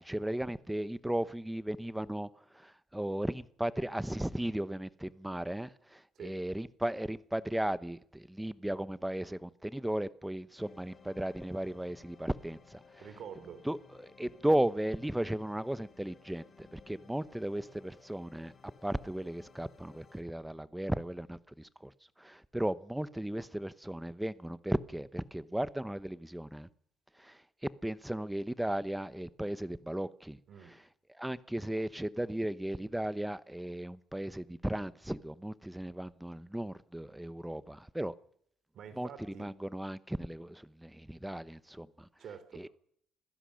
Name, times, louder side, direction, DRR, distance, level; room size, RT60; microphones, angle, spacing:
voice 1, 0.0-2.3 2.5-12.8 13.6-18.5 18.8-21.9 22.2-26.7 27.2-27.4 27.8-30.4 31.2-38.1 39.0-39.1 39.4-42.1 42.6-42.7, right 1 dB, 5° right, 0.9 m, -36 dB
sound 1, 10.6-20.2, left 5 dB, 35° left, 4.3 m, -59 dB
voice 2, 13.0-13.6 30.5-30.8 38.7-39.5 42.2-42.7, right 7 dB, 60° right, 3.0 m, -47 dB
26.0 x 16.0 x 6.4 m
cardioid pair, 110°, 0 cm